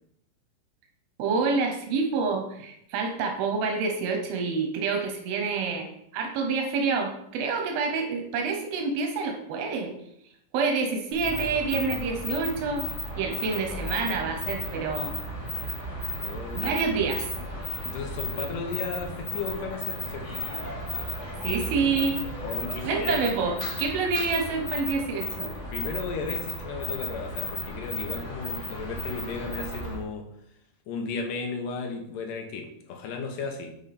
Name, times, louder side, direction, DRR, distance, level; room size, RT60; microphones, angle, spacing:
voice 1, 1.2-5.9 6.1-9.9 10.5-12.9 13.2-15.1 16.5-17.3 21.4-22.2 22.8-25.5, right 4 dB, 85° right, 2 dB, 2.8 m, -27 dB
sound 1, 11.1-30.0, left 1 dB, 30° left, 1.4 m, -34 dB
voice 2, 16.1-16.9 17.9-20.4 22.4-23.3 25.7-30.3 30.9-33.7, left 4 dB, 70° left, 2 dB, 2.7 m, -35 dB
10.5 x 4.9 x 4.3 m, 0.76 s
omnidirectional pair, 4.1 m